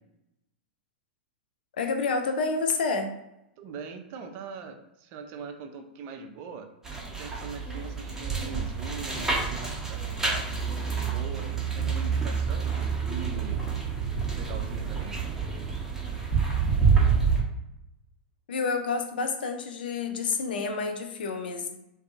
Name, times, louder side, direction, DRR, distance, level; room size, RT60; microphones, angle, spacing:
voice 1, 1.8-3.1 18.5-21.8, left 4 dB, 75° left, 5 dB, 0.5 m, -29 dB
voice 2, 3.6-6.7 7.2-10.5 11.0-13.6 14.3-15.3, right 5 dB, 45° right, 5 dB, 0.4 m, -41 dB
sound 1, 6.8-17.4, right 5 dB, 10° right, 0.8 m, -28 dB
2.6 x 2.3 x 2.5 m, 0.86 s
hypercardioid pair, 100°, 5 cm